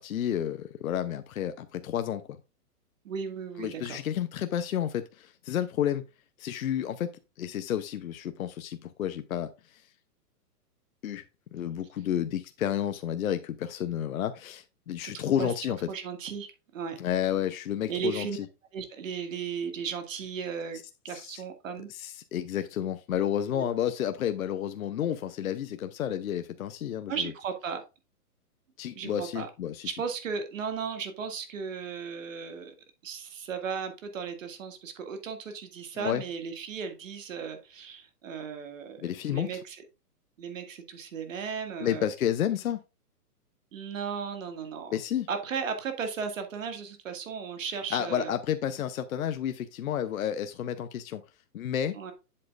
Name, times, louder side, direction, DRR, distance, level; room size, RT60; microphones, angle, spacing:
voice 1, 0.0-2.4 3.6-6.0 6.4-7.1 7.4-9.8 11.0-11.2 11.5-15.8 17.0-18.4 21.1-21.4 21.9-27.3 28.8-29.9 36.0-36.2 39.0-39.5 41.8-42.8 44.9-45.3 47.9-51.2 51.5-51.9, left 10 dB, 60° left, 9 dB, 0.8 m, -31 dB
voice 2, 3.0-4.0 15.0-15.5 15.9-17.0 17.9-18.4 18.7-21.9 23.5-23.7 27.1-27.8 29.0-29.5 29.8-32.7 33.0-39.8 40.4-42.1 43.7-45.0 45.3-48.3 51.9-52.1, right 6 dB, 55° right, 7 dB, 2.0 m, -36 dB
7.9 x 7.6 x 2.4 m, 0.28 s
hypercardioid pair, 170°, 47 cm